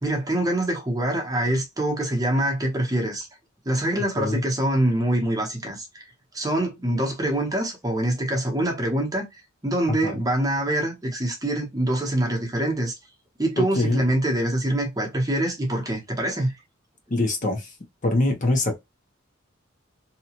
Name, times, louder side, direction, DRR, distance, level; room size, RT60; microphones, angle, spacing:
voice 1, 0.0-3.3 3.7-6.0 6.3-12.9 13.4-16.5, right 1 dB, 20° right, 0.9 m, -25 dB
voice 2, 13.6-14.0 17.1-17.7 18.0-18.7, left 2 dB, 40° left, 0.7 m, -23 dB
2.8 x 2.3 x 2.8 m
head